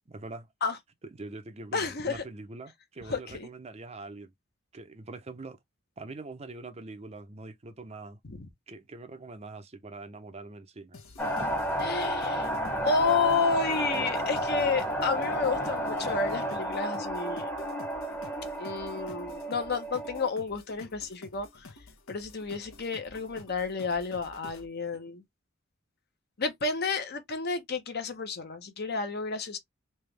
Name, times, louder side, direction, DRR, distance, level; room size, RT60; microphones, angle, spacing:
voice 1, 0.1-0.5 1.2-4.3 4.7-5.6 6.0-8.2 8.7-11.0, right 3 dB, 30° right, 0.6 m, -43 dB
voice 2, 1.7-2.2 3.1-3.5 8.2-8.5 11.8-12.5 12.8-17.5 18.6-21.7 22.1-25.2 26.4-29.6, left 4 dB, 50° left, 0.9 m, -31 dB
sound 1, 10.9-24.7, left 2 dB, 80° left, 1.0 m, -51 dB
sound 2, 11.2-20.3, equal, 10° left, 0.9 m, -32 dB
3.4 x 3.0 x 3.2 m
head